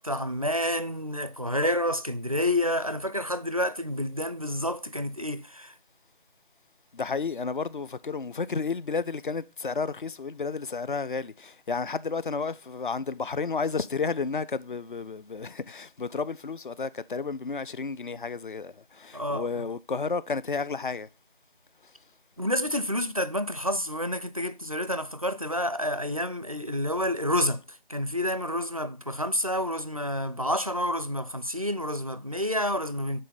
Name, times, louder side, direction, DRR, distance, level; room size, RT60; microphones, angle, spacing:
voice 1, 0.0-5.7 19.1-19.5 22.4-27.6 27.9-33.2, left 1 dB, 40° right, 0.4 m, -29 dB
voice 2, 6.9-21.1, left 4 dB, 55° left, 0.5 m, -32 dB
7.5 x 4.2 x 5.2 m
figure-of-eight pair, 170°, 30 cm